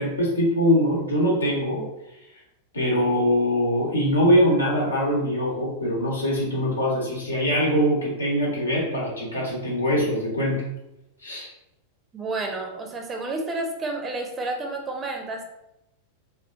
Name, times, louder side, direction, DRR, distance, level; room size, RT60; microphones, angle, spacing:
voice 1, 0.0-1.8 2.7-10.6 11.2-11.5, equal, 75° left, -3 dB, 1.0 m, -23 dB
voice 2, 12.1-15.4, right 2 dB, 20° right, 3 dB, 0.5 m, -30 dB
3.7 x 2.2 x 2.4 m, 0.88 s
figure-of-eight pair, 90°, 0 cm